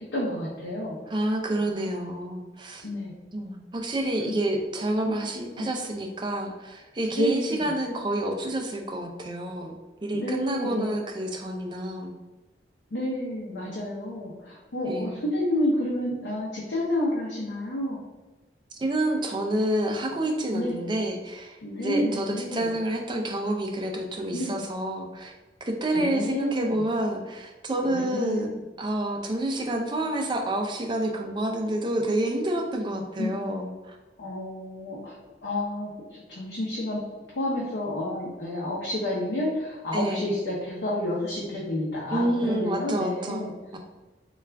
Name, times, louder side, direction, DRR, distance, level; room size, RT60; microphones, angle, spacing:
voice 1, 0.0-1.0 1.7-1.9 2.8-3.1 4.2-4.4 5.0-5.1 5.6-5.7 7.1-7.7 10.1-11.0 12.9-18.0 20.5-20.8 21.6-22.7 24.3-24.6 25.9-26.8 27.8-28.6 33.2-33.3 34.2-35.2 35.4-37.0 37.3-43.5, left 1 dB, 85° left, -5 dB, 0.7 m, -30 dB
voice 2, 1.1-2.9 3.3-9.7 10.0-12.1 14.9-15.2 18.7-25.3 25.6-28.5 28.8-34.0 39.9-40.3 42.1-43.8, right 1 dB, 25° right, 3 dB, 0.4 m, -28 dB
3.4 x 2.4 x 3.3 m, 1.2 s
head